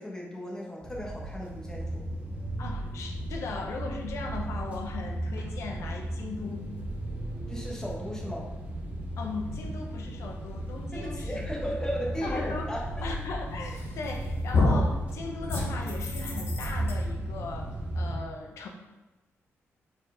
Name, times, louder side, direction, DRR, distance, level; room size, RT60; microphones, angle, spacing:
voice 1, 0.0-2.1 7.5-8.5 10.9-12.8, equal, 10° left, -3 dB, 1.1 m, -36 dB
sound 1, 0.8-18.2, right 1 dB, 30° right, 1.1 m, -35 dB
voice 2, 2.6-6.7 9.2-11.4 11.7-11.8 12.1-12.7 13.0-18.7, left 3 dB, 85° left, 2 dB, 0.9 m, -38 dB
sound 2, 13.8-14.2 14.5-14.9 15.5-16.9, left 2 dB, 60° left, 1.2 m, -26 dB
4.5 x 4.4 x 4.9 m, 1.1 s
wide cardioid pair, 175°, 5 cm